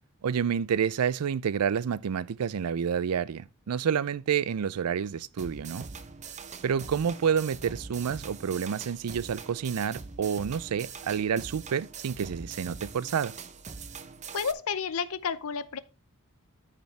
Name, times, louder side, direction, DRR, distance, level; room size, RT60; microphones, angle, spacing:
voice 1, 0.2-5.9 6.6-13.3, right 7 dB, 80° right, 0.4 m, -29 dB
sound 1, 5.4-14.5, right 5 dB, 30° right, 0.7 m, -43 dB
voice 2, 14.3-15.8, left 6 dB, 70° left, 0.6 m, -31 dB
13.5 x 5.3 x 3.3 m
head